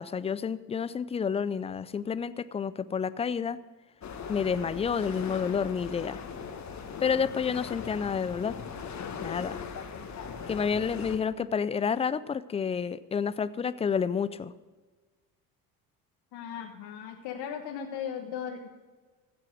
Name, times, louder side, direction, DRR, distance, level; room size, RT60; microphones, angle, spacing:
voice 1, 0.0-3.6 4.3-6.2 7.0-8.5 9.2-9.6 10.5-14.5, left 6 dB, 15° left, 17 dB, 0.3 m, -29 dB
sound 1, 4.0-11.2, left 6 dB, 35° left, 1.7 m, -39 dB
voice 2, 16.3-18.7, left 8 dB, 55° left, 2 dB, 1.4 m, -37 dB
15.5 x 7.8 x 6.3 m, 1.4 s
hypercardioid pair, 65°, 47 cm